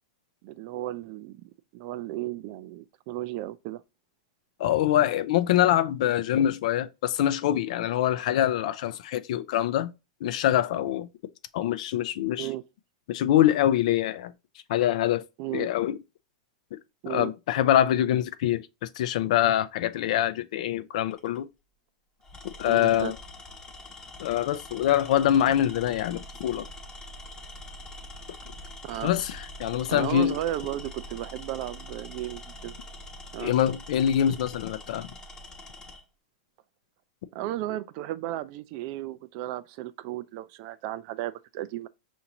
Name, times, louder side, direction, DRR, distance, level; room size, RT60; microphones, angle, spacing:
voice 1, 0.4-3.8 12.4-12.6 15.4-15.7 17.0-17.3 22.6-23.1 28.8-29.1 29.9-32.8 33.3-33.5 37.3-41.9, right 14 dB, 50° right, 0.4 m, -34 dB
voice 2, 4.6-9.9 10.2-11.1 11.5-12.5 13.1-14.3 14.7-15.2 15.5-16.0 16.7-16.8 17.1-21.5 22.6-23.1 24.2-26.7 29.0-30.4 33.4-35.1, left 11 dB, 65° left, 0.4 m, -24 dB
Tools, 21.1-21.4 22.2-36.0, left 1 dB, 15° left, 1.0 m, -44 dB
5.7 x 2.6 x 2.9 m
hypercardioid pair, 135°, 4 cm